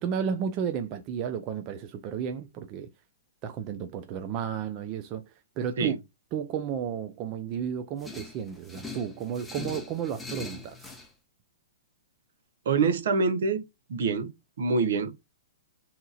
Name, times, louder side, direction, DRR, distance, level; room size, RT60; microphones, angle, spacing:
voice 1, 0.0-2.9 3.4-5.2 5.6-5.9 6.3-10.9, right 8 dB, 35° right, 0.4 m, -32 dB
sound 1, 8.0-11.1, left 3 dB, 5° left, 0.6 m, -41 dB
voice 2, 12.6-13.6 13.9-14.3 14.6-15.2, right 4 dB, 65° right, 0.8 m, -25 dB
2.9 x 2.3 x 4.0 m
hypercardioid pair, 140°, 0 cm